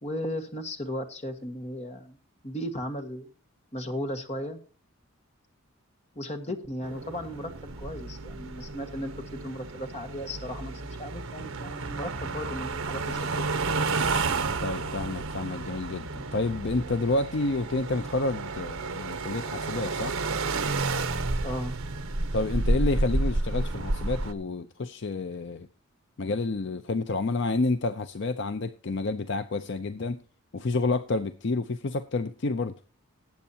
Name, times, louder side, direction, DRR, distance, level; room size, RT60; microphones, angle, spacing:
voice 1, 0.0-2.2 2.4-3.3 3.7-4.6 6.1-7.5 7.8-13.4 21.4-21.8, equal, 30° left, 6 dB, 1.5 m, -36 dB
sound 1, 6.8-24.3, right 3 dB, 70° right, 1.1 m, -31 dB
voice 2, 14.6-20.2 22.3-25.7 26.2-30.2 30.5-32.7, left 3 dB, 55° left, 10 dB, 0.6 m, -29 dB
19.0 x 8.3 x 2.8 m, 0.37 s
head